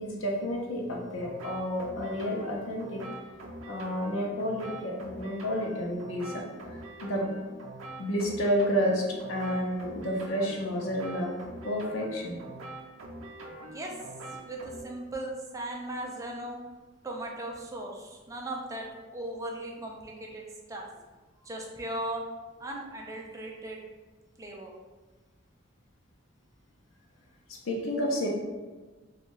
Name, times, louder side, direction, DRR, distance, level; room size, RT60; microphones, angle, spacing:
voice 1, 0.0-3.0 3.7-6.4 6.7-7.4 8.0-11.3 11.6-12.4 27.5-28.3, equal, 90° left, 0 dB, 0.6 m, -30 dB
sound 1, 1.2-14.8, right 1 dB, 85° right, 0.5 m, -44 dB
voice 2, 14.4-16.6 17.0-20.8 21.5-22.2 22.6-23.8 24.4-24.7, right 1 dB, 15° right, -1 dB, 0.4 m, -38 dB
2.6 x 2.3 x 3.0 m, 1.3 s
head